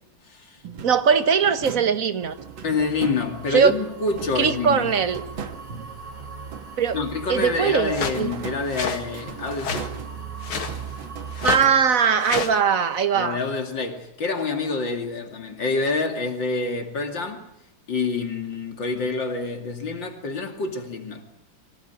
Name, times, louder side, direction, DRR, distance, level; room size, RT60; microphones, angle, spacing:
sound 1, 0.6-3.7 4.1-6.9 7.3-12.2, right 6 dB, 75° right, 2.3 m, -40 dB
voice 1, 0.8-2.4 3.5-3.7 4.3-5.2 6.8-8.3 11.4-13.4, right 7 dB, 45° right, 1.6 m, -20 dB
sound 2, 2.2-11.6, right 5 dB, 20° right, 2.0 m, -39 dB
voice 2, 2.6-4.9 6.9-9.9 13.1-17.4 17.9-21.2, left 3 dB, 65° left, 3.3 m, -27 dB
sound 3, 7.9-8.2 8.7-9.0 9.6-9.9 10.4-10.8 11.3-11.7 12.2-12.6, left 6 dB, 90° left, 2.7 m, -29 dB
24.5 x 17.5 x 9.6 m
omnidirectional pair, 2.2 m